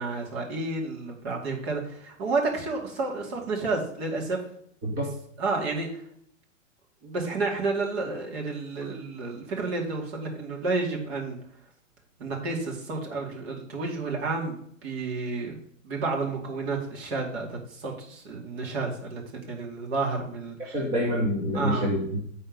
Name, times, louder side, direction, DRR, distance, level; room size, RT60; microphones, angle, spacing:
voice 1, 0.0-4.4 5.4-6.0 7.0-11.4 12.2-15.6 15.8-20.8 21.5-21.9, right 3 dB, 50° right, -1 dB, 2.6 m, -31 dB
voice 2, 20.6-22.2, equal, 5° right, -3 dB, 0.4 m, -27 dB
9.3 x 4.3 x 5.3 m, 0.67 s
hypercardioid pair, 150°, 40 cm